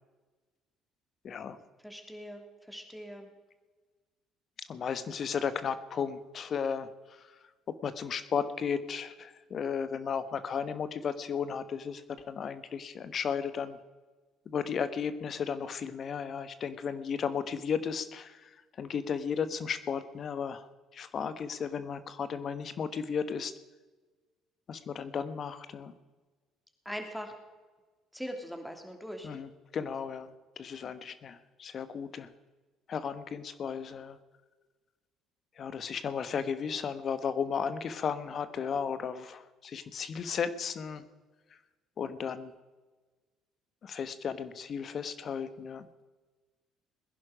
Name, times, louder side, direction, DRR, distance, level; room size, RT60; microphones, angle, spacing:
voice 1, 1.2-1.6 4.7-6.9 7.8-13.8 14.5-18.5 18.8-20.7 20.9-23.5 24.7-25.9 29.2-30.3 30.6-32.3 32.9-34.2 35.6-41.0 42.0-42.5 43.8-45.9, left 6 dB, 50° left, 12 dB, 1.3 m, -34 dB
voice 2, 1.8-3.3 26.8-27.3 28.1-29.3, equal, 5° left, 4 dB, 3.0 m, -41 dB
20.5 x 11.0 x 5.2 m, 1.3 s
hypercardioid pair, 60°, 0 cm